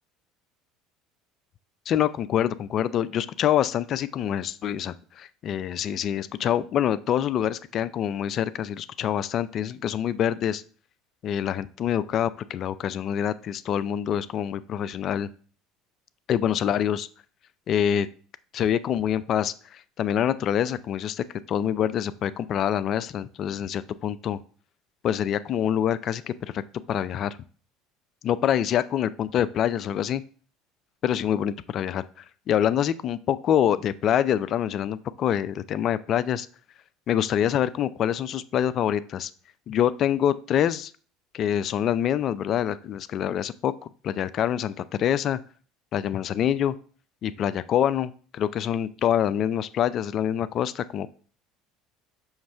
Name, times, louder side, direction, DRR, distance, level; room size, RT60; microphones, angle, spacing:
voice 1, 1.9-10.6 11.2-15.3 16.3-17.1 17.7-18.1 18.5-24.4 25.0-26.6 26.9-27.4 28.2-30.2 31.0-36.5 37.1-39.3 39.7-40.9 41.3-45.4 45.9-46.7 47.2-51.2, left 10 dB, 50° left, 15 dB, 0.4 m, -26 dB
5.8 x 3.2 x 5.5 m, 0.41 s
hypercardioid pair, 80°, 0 cm